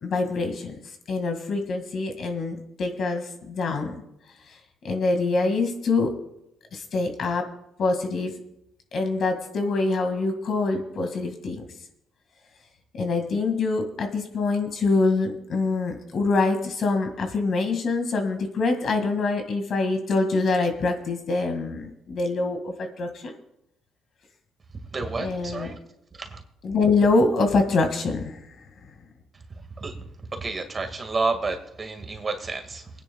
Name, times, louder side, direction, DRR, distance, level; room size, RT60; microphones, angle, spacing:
voice 1, 0.0-0.8 1.1-4.0 4.5-4.6 4.8-6.2 6.7-7.5 7.8-8.3 8.9-11.6 13.0-23.4 25.2-25.8 26.6-28.4, left 3 dB, 55° left, 2.0 m, -25 dB
voice 2, 24.7-25.8 26.2-26.4 29.8-29.9 30.3-32.9, right 3 dB, 30° right, 1.9 m, -30 dB
26.5 x 9.8 x 2.3 m
cardioid pair, 90°, 0 cm